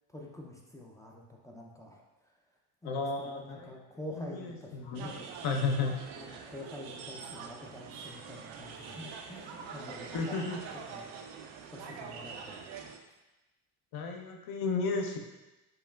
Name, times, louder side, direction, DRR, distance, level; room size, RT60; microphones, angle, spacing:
voice 1, 0.1-2.3 2.8-5.4 6.2-10.6 10.9-11.1 11.7-12.9, left 1 dB, 10° left, -1 dB, 0.4 m, -47 dB
voice 2, 2.8-3.7 4.2-4.3 4.7-5.1 5.4-5.9 10.1-10.6 13.9-15.2, left 4 dB, 55° left, 2 dB, 0.7 m, -32 dB
sound 1, 4.9-13.0, right 6 dB, 75° right, 0.6 m, -44 dB
5.4 x 2.1 x 2.3 m, 1.0 s
hypercardioid pair, 65°, 45 cm